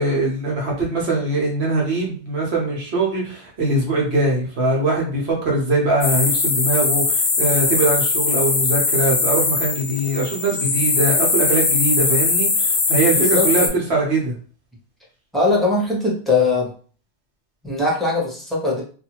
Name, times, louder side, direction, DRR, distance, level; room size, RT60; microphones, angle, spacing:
voice 1, 0.0-14.3, right 2 dB, 60° right, -1 dB, 1.1 m, -22 dB
sound 1, 6.0-13.7, left 3 dB, 60° left, 0.8 m, -20 dB
voice 2, 13.1-13.5 15.3-16.7 17.6-18.8, left 3 dB, ahead, -5 dB, 0.8 m, -20 dB
2.7 x 2.4 x 2.9 m, 0.41 s
omnidirectional pair, 1.2 m